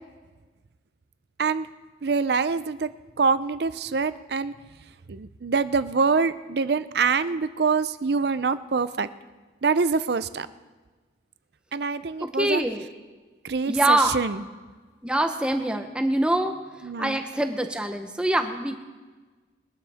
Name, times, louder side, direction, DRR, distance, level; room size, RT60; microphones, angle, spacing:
voice 1, 2.0-2.9 3.2-4.5 5.1-9.1 9.6-10.5 11.7-12.6 13.4-14.4 16.8-17.2, right 5 dB, 60° right, 14 dB, 0.5 m, -25 dB
voice 2, 12.2-12.9 13.7-14.2 15.0-16.5 17.0-18.7, right 1 dB, 5° right, 6 dB, 0.8 m, -24 dB
22.0 x 12.0 x 3.5 m, 1.3 s
head